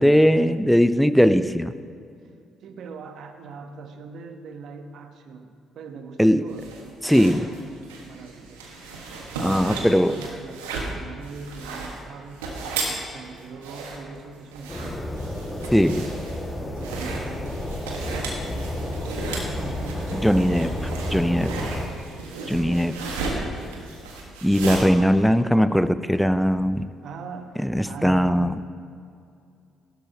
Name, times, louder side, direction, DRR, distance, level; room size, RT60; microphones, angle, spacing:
voice 1, 0.0-1.7 6.2-6.5 7.0-7.5 9.4-10.2 15.7-16.1 20.1-20.7 21.1-21.5 22.5-23.0 23.3-23.4 24.4-26.9 27.6-28.7, equal, ahead, 13 dB, 0.6 m, -20 dB
voice 2, 2.6-7.7 8.0-8.7 9.6-12.5 12.9-15.0 16.6-20.6 21.1-21.7 22.0-22.5 27.0-27.5 27.8-28.7, right 4 dB, 65° right, 6 dB, 1.1 m, -41 dB
sound 1, 6.5-24.8, right 3 dB, 90° right, 1.6 m, -35 dB
sound 2, 14.7-21.9, left 1 dB, 25° left, 2.0 m, -31 dB
15.0 x 12.5 x 3.0 m, 2.4 s
hypercardioid pair, 50°, 0 cm